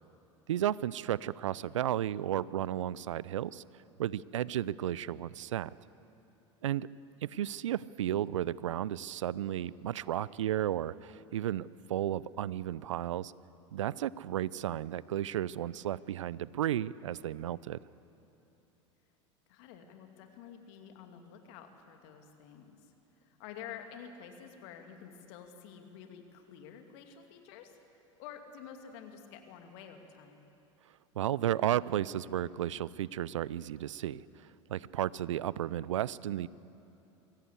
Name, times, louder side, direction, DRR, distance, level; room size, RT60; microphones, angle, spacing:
voice 1, 0.5-3.6 4.0-5.8 6.6-6.9 7.2-13.3 13.7-17.8 31.2-34.2 34.7-36.5, right 11 dB, 80° right, 21 dB, 0.5 m, -33 dB
voice 2, 19.5-27.8 28.2-30.4, left 8 dB, 60° left, 5 dB, 2.6 m, -49 dB
24.0 x 16.5 x 8.3 m, 3.0 s
hypercardioid pair, 85°, 16 cm